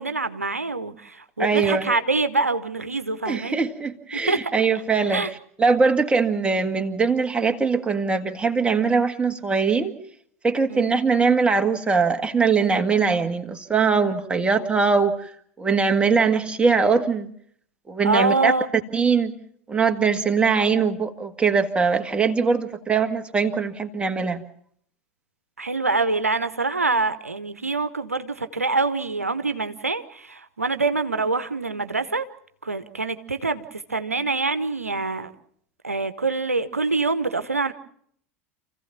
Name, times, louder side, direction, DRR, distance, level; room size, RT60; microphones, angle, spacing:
voice 1, 0.0-3.6 4.1-4.5 5.1-5.3 10.7-10.9 18.0-18.7 25.6-32.2 32.6-35.3 35.8-37.7, right 3 dB, 90° right, 11 dB, 0.9 m, -25 dB
voice 2, 1.4-1.9 3.3-5.2 5.6-9.9 10.4-15.3 15.6-17.3 17.9-18.5 18.9-19.3 19.7-24.4, right 5 dB, 15° right, 5 dB, 1.9 m, -21 dB
28.0 x 15.5 x 7.3 m, 0.67 s
figure-of-eight pair, 80°, 8 cm